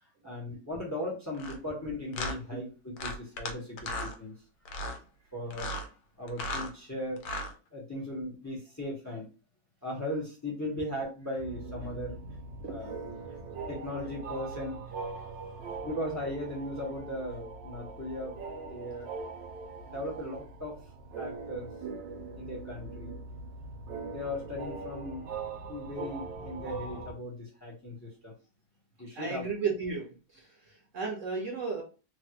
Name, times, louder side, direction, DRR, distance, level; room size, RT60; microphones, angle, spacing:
voice 1, 0.2-4.3 5.3-5.7 6.2-7.2 7.7-9.3 9.8-12.1 12.7-12.9 13.2-13.4 13.7-14.8 15.5-18.4 18.7-19.3 19.9-20.8 21.2-21.7 22.4-23.1 24.1-25.2 25.7-28.3 29.0-29.4, left 1 dB, 25° left, -3 dB, 0.3 m, -37 dB
sound 1, 1.4-1.6 2.1-2.4 3.0-3.5 3.8-4.1 4.7-5.0 5.5-5.9 6.3-6.7 7.2-7.5, left 2 dB, 70° left, 1.0 m, -35 dB
sound 2, 11.4-27.1, right 4 dB, 85° right, 1.4 m, -41 dB
voice 2, 29.1-31.8, right 5 dB, 60° right, 0 dB, 0.8 m, -34 dB
3.2 x 2.3 x 2.7 m, 0.33 s
omnidirectional pair, 1.9 m